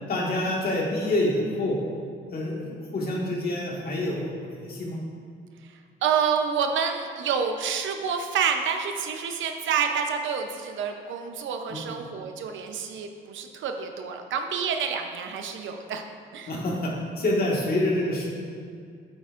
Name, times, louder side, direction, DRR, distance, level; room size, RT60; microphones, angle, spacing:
voice 1, 0.1-1.8 2.3-5.0 11.7-11.8 16.5-18.3, left 1 dB, 50° left, -3 dB, 1.8 m, -27 dB
voice 2, 6.0-16.0 16.3-16.5, right 6 dB, 75° right, 5 dB, 0.7 m, -28 dB
8.2 x 8.0 x 2.5 m, 2.2 s
cardioid pair, 90°, 20 cm